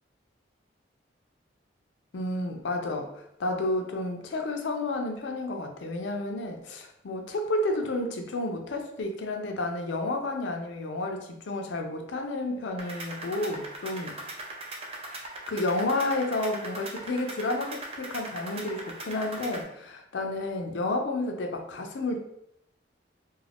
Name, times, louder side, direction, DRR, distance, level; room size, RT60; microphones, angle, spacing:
voice 1, 2.1-14.2 15.1-15.2 15.5-22.2, left 2 dB, 75° left, 4 dB, 0.4 m, -31 dB
sound 1, 12.8-19.6, right 2 dB, 30° right, 0.4 m, -40 dB
2.4 x 2.2 x 3.3 m, 0.80 s
head